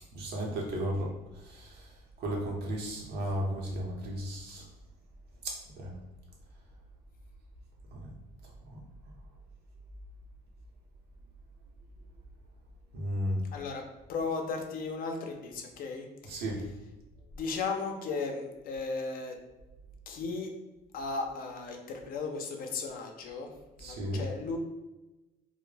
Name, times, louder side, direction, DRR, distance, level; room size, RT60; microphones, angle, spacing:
voice 1, 0.1-1.1 1.5-1.7 2.2-4.6 5.4-5.9 12.9-13.4 16.3-16.6 23.8-24.2, right 1 dB, 70° right, -1 dB, 0.7 m, -34 dB
voice 2, 13.5-13.8 14.1-16.4 17.4-19.4 20.1-20.5 20.9-23.5 23.8-24.6, left 4 dB, 55° left, 3 dB, 0.5 m, -36 dB
2.1 x 2.0 x 3.2 m, 1.1 s
cardioid pair, 110°, 17 cm